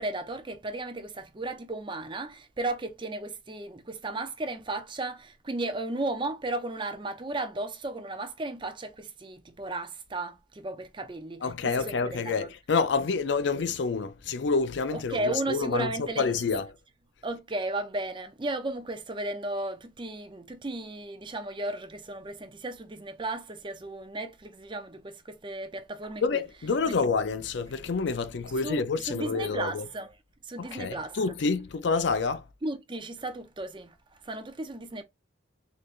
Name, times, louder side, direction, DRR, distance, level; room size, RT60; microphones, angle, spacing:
voice 1, 0.0-12.5 14.9-16.3 17.2-26.4 26.9-27.1 28.6-30.1 30.4-31.2 32.6-33.9 34.2-35.0, right 2 dB, 25° right, 0.5 m, -35 dB
voice 2, 11.4-16.7 26.2-29.9 30.6-32.4, left 4 dB, 60° left, 0.5 m, -28 dB
3.9 x 3.2 x 2.4 m
head